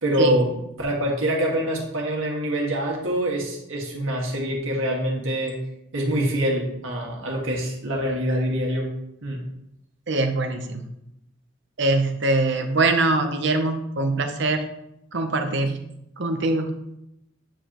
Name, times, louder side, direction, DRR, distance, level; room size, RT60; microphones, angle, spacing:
voice 1, 0.0-5.5 5.9-8.9 9.2-9.4, equal, 75° right, -1 dB, 1.8 m, -25 dB
voice 2, 10.1-10.8 11.8-14.6 15.1-15.8 16.2-16.7, right 2 dB, 60° right, 6 dB, 0.8 m, -23 dB
8.8 x 5.0 x 3.0 m, 0.81 s
head